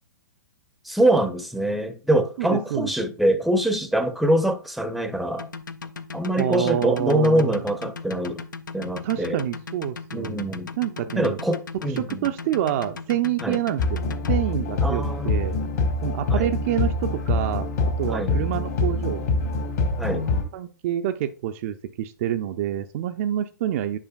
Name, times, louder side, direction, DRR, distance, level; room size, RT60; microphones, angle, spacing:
voice 1, 0.8-5.5 6.1-8.4 8.7-9.4 10.1-10.8 11.2-12.3 13.4-13.6 14.8-15.4 16.3-16.5 18.1-18.4 20.0-20.3, right 1 dB, ahead, 0.6 m, -24 dB
voice 2, 2.4-2.9 6.4-7.6 9.0-11.4 11.9-14.0 14.3-15.6 16.0-17.7 18.0-19.3 20.5-24.0, right 11 dB, 45° right, 0.5 m, -27 dB
sound 1, 5.4-14.3, left 4 dB, 75° left, 0.6 m, -37 dB
sound 2, 13.8-20.4, left 3 dB, 55° left, 1.8 m, -25 dB
9.8 x 4.9 x 2.4 m
figure-of-eight pair, 110°, 10 cm